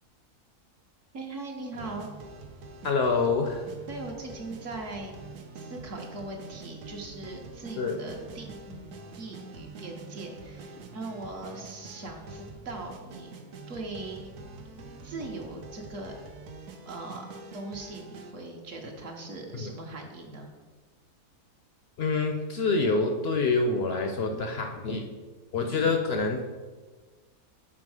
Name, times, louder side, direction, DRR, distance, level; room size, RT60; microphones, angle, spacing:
voice 1, 1.1-2.1 3.9-5.3 5.5-13.3 13.7-14.3 15.0-16.1 16.9-17.3 17.5-20.5 25.8-25.9, right 2 dB, 60° right, 1 dB, 1.2 m, -40 dB
sound 1, 1.7-18.3, right 3 dB, 80° right, 1.2 m, -45 dB
voice 2, 2.8-3.6 7.8-8.0 19.6-19.7 22.0-25.1 25.5-26.4, left 3 dB, 60° left, 3 dB, 0.6 m, -26 dB
6.1 x 4.6 x 4.7 m, 1.3 s
omnidirectional pair, 1.6 m